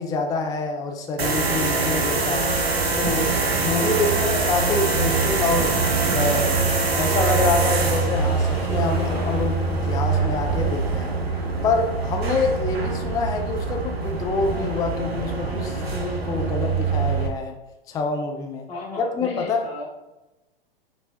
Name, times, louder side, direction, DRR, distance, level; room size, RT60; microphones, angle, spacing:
voice 1, 0.0-2.5 3.0-5.8 6.1-6.6 6.9-11.1 11.6-17.6 17.9-18.7 19.0-19.7, left 4 dB, 10° left, 4 dB, 0.4 m, -26 dB
sound 1, 1.2-17.3, right 4 dB, 85° right, 0.8 m, -24 dB
sound 2, 3.8-15.9, right 1 dB, 35° right, 1.5 m, -39 dB
voice 2, 18.7-20.1, left 2 dB, 80° left, -2 dB, 1.5 m, -36 dB
5.9 x 3.3 x 2.6 m, 1.0 s
figure-of-eight pair, 100°, 30 cm